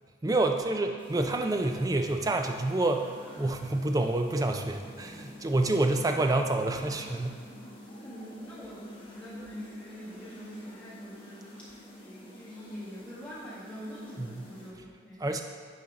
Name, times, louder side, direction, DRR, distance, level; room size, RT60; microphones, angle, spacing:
voice 1, 0.2-7.4 14.4-14.5 15.2-15.4, right 2 dB, 20° right, 4 dB, 0.4 m, -28 dB
sound 1, 1.0-14.7, equal, 25° left, 1.1 m, -49 dB
voice 2, 8.0-11.7 12.0-15.3, equal, 5° left, -9 dB, 1.8 m, -45 dB
9.6 x 4.4 x 3.7 m, 2.1 s
head